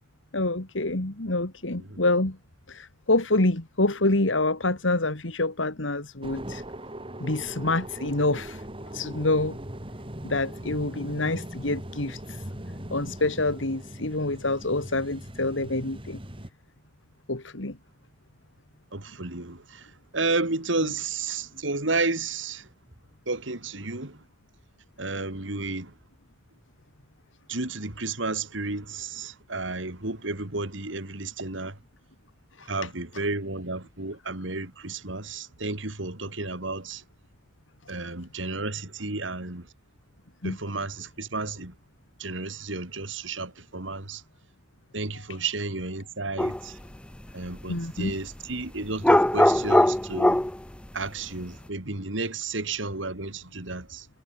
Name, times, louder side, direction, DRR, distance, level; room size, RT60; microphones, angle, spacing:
voice 1, 0.3-2.4 2.7-6.6 7.2-8.6 8.9-9.6 10.2-12.4 12.9-16.2 17.3-17.8 32.6-32.9 40.4-40.6 47.7-48.2, left 2 dB, 85° left, 2.5 m, -27 dB
sound 1, 6.2-16.5, right 1 dB, 30° right, 3.5 m, -40 dB
voice 2, 18.9-19.9 20.1-22.7 23.3-24.2 25.0-25.9 27.5-31.8 32.7-37.0 37.9-39.7 40.4-41.7 42.2-44.2 44.9-46.8 47.3-50.4 50.9-54.1, right 3 dB, 80° right, 3.1 m, -32 dB
sound 2, 46.4-46.6 49.0-50.6, left 1 dB, 5° left, 0.5 m, -20 dB
head